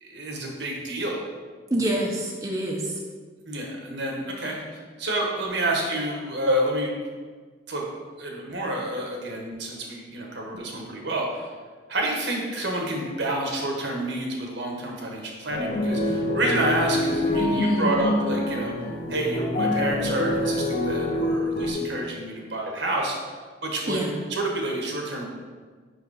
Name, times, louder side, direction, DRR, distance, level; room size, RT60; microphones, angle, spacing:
voice 1, 0.0-1.2 3.5-4.6 5.0-6.9 7.7-7.8 8.2-11.5 11.9-18.7 19.1-23.2 23.6-24.0 24.3-25.2, right 1 dB, 70° right, 0 dB, 1.3 m, -28 dB
voice 2, 1.7-2.9 17.4-18.1 23.9-24.1, right 1 dB, 15° right, -2 dB, 0.6 m, -27 dB
sound 1, 15.5-21.7, left 1 dB, 50° left, 0.9 m, -26 dB
4.8 x 4.8 x 4.9 m, 1.5 s
head